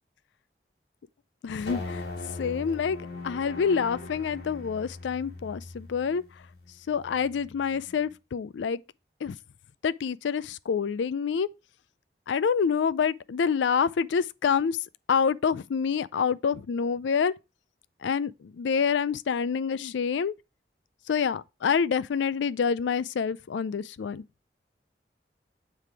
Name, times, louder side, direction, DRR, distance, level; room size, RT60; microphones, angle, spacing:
voice 1, 1.4-2.1 2.4-3.0 3.2-6.2 6.9-8.8 9.2-9.4 9.8-11.5 12.3-14.8 15.1-17.3 18.0-20.4 21.1-24.2, left 6 dB, 85° left, 0.4 m, -27 dB
sound 1, 1.7-8.1, left 2 dB, 65° left, 1.5 m, -40 dB
7.5 x 3.4 x 4.6 m
head